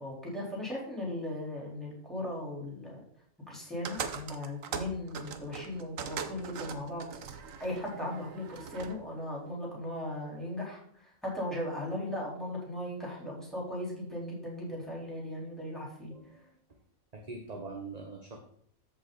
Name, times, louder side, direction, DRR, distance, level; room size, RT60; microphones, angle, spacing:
voice 1, 0.0-3.0 3.5-7.1 7.6-10.8 11.2-16.1, left 1 dB, ahead, -4 dB, 3.9 m, -37 dB
sound 1, 3.8-9.0, right 7 dB, 65° right, 1.2 m, -41 dB
voice 2, 16.0-16.8 17.1-18.4, right 3 dB, 30° right, 2 dB, 1.0 m, -44 dB
14.0 x 5.5 x 4.0 m, 0.64 s
omnidirectional pair, 1.5 m